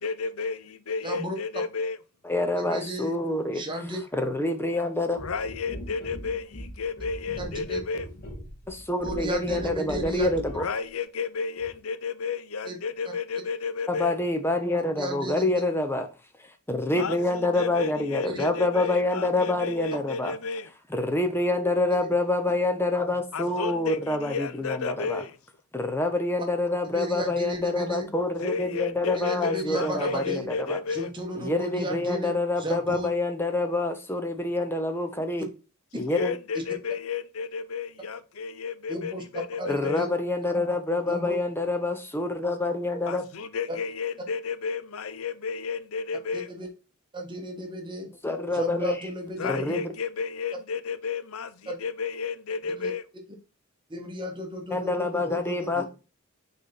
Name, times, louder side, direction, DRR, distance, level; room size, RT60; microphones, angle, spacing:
voice 1, 0.0-2.0 5.2-8.1 10.6-14.1 16.9-20.7 23.3-25.4 28.4-31.1 36.1-40.0 43.1-46.5 49.4-53.0, left 5 dB, 85° left, 0.6 m, -32 dB
voice 2, 1.0-1.4 2.6-3.1 3.5-4.0 7.4-7.8 9.0-10.3 12.6-12.8 15.0-15.5 18.2-18.4 22.0-22.1 26.8-28.1 29.1-30.5 30.9-33.1 38.9-40.1 41.1-41.4 46.3-46.7 47.1-48.1 48.5-49.8 51.7-51.8 52.8-52.9 53.9-55.8, equal, 25° right, 1.6 m, -34 dB
voice 3, 2.2-3.6 4.1-5.2 8.7-10.6 13.9-16.1 16.7-20.4 20.9-25.2 25.7-30.8 31.4-35.5 35.9-36.4 39.7-43.2 48.2-48.9 49.4-49.8 54.7-55.8, left 2 dB, 10° left, 0.8 m, -27 dB
sound 1, 5.1-10.7 11.6-11.7, equal, 50° left, 2.1 m, -40 dB
6.3 x 4.2 x 4.1 m
head